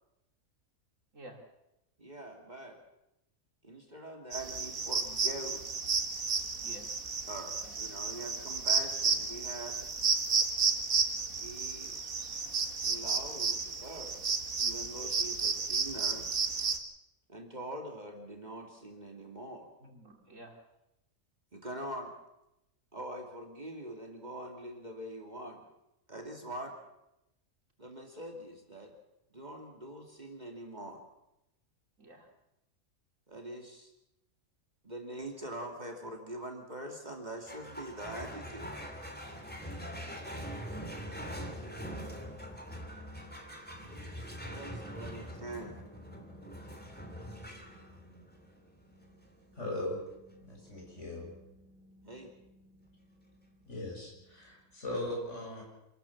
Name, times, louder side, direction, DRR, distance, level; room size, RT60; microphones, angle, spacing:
voice 1, 2.0-2.8 3.6-5.6 7.3-9.8 11.4-12.0 12.8-14.2 14.6-16.3 17.3-19.7 21.5-22.1 22.9-25.6 26.1-26.7 27.8-28.9 29.3-31.0 33.3-33.9 34.8-38.7 44.5-45.8 52.0-52.3, right 1 dB, 30° right, 2 dB, 2.7 m, -43 dB
sound 1, 4.3-16.8, right 5 dB, 80° right, 2.1 m, -32 dB
voice 2, 6.6-6.9 7.6-7.8 19.8-20.6 32.0-32.3 39.6-40.2, right 1 dB, 65° right, 2 dB, 3.4 m, -52 dB
sound 2, 37.5-54.2, equal, 5° left, 2.8 m, -44 dB
voice 3, 49.5-50.0 50.4-51.3 53.7-55.6, left 1 dB, 55° left, -2 dB, 7.3 m, -39 dB
27.0 x 13.5 x 7.2 m, 0.87 s
omnidirectional pair, 1.4 m